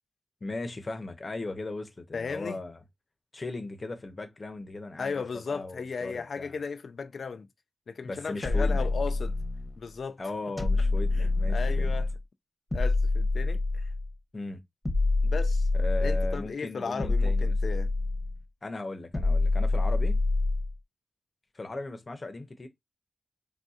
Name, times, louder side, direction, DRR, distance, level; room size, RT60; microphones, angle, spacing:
voice 1, 0.4-2.8 3.3-6.6 8.0-8.9 10.2-11.9 14.3-14.6 15.7-17.6 18.6-20.2 21.5-22.7, left 2 dB, 40° left, 0.7 m, -37 dB
voice 2, 2.1-2.6 5.0-7.5 7.9-9.4 9.8-10.2 11.1-12.1 12.7-13.9 15.2-15.7 16.0-17.9, left 5 dB, 80° left, 0.4 m, -36 dB
sound 1, 8.4-9.7 10.6-12.2 12.7-14.1 14.8-16.5 17.0-18.4 19.1-20.7, left 2 dB, 15° left, 0.9 m, -26 dB
3.5 x 2.6 x 2.4 m
wide cardioid pair, 105°, 0 cm